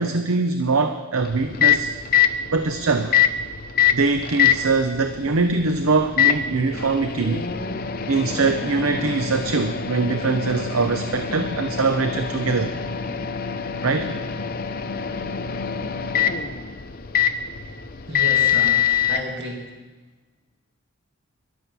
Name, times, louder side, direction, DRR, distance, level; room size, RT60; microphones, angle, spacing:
voice 1, 0.0-1.9 2.5-3.2 3.9-7.5 8.1-12.7 13.8-14.2, right 3 dB, 80° right, 8 dB, 0.7 m, -22 dB
Microwave oven, 1.2-19.2, left 9 dB, 45° left, 0.6 m, -24 dB
voice 2, 18.1-19.6, equal, 55° right, 0 dB, 2.4 m, -32 dB
11.5 x 10.5 x 6.8 m, 1.2 s
head